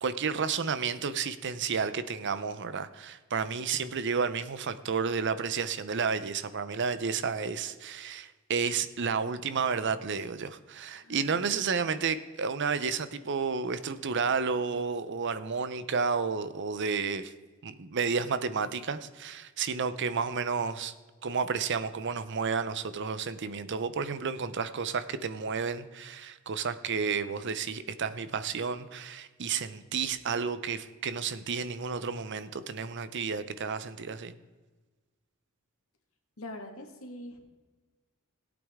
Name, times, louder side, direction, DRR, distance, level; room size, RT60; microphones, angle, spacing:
voice 1, 0.0-17.3 17.6-20.9 21.2-34.3, right 5 dB, 60° right, 13 dB, 0.7 m, -31 dB
voice 2, 10.9-11.5 36.4-37.4, left 1 dB, 85° left, 3 dB, 1.9 m, -44 dB
18.0 x 8.6 x 3.6 m, 1.3 s
head